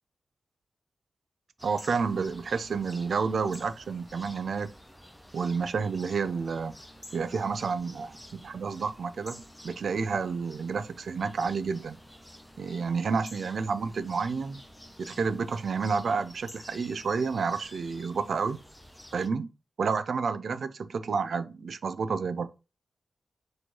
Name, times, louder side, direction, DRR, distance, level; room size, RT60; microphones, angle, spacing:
sound 1, 1.6-19.3, equal, 5° left, 0.6 m, -50 dB
voice 1, 1.6-4.7 5.3-6.8 7.1-12.0 12.6-14.6 15.0-18.6 19.1-19.5 19.8-22.5, right 5 dB, 65° right, 0.3 m, -30 dB
4.2 x 3.1 x 2.9 m
wide cardioid pair, 150°, 0 cm